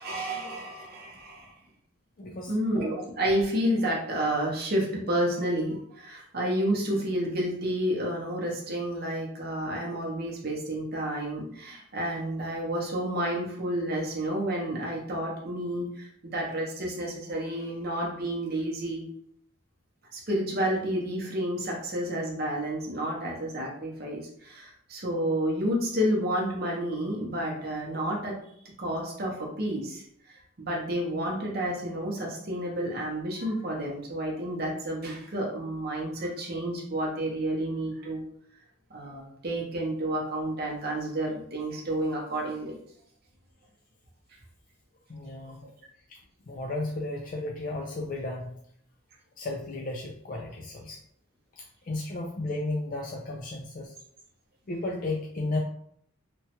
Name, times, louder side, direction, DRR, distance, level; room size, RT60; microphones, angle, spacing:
voice 1, 0.0-1.6 2.5-19.1 20.1-28.4 28.8-38.2 38.9-42.8, right 1 dB, 50° right, -2 dB, 0.7 m, -30 dB
voice 2, 2.2-2.5 45.1-45.7 46.1-46.2 46.5-48.6 49.4-51.0 51.5-54.0 54.7-55.6, left 2 dB, 40° left, -1 dB, 0.4 m, -34 dB
2.9 x 2.2 x 2.8 m, 0.67 s
head